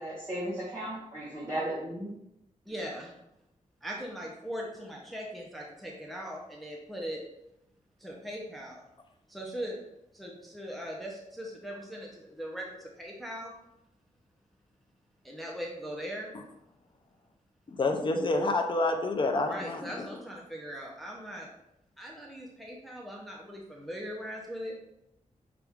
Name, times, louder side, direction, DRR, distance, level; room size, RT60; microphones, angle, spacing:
voice 1, 0.0-2.1, right 1 dB, 20° right, -8 dB, 1.1 m, -35 dB
voice 2, 2.7-3.1 3.8-7.2 8.0-8.8 9.3-9.8 10.1-13.5 15.2-16.3 19.4-21.5 22.0-24.7, equal, ahead, -2 dB, 0.7 m, -40 dB
voice 3, 17.7-20.1, left 2 dB, 35° left, 4 dB, 0.6 m, -28 dB
5.8 x 2.5 x 3.5 m, 0.84 s
wide cardioid pair, 130°, 14 cm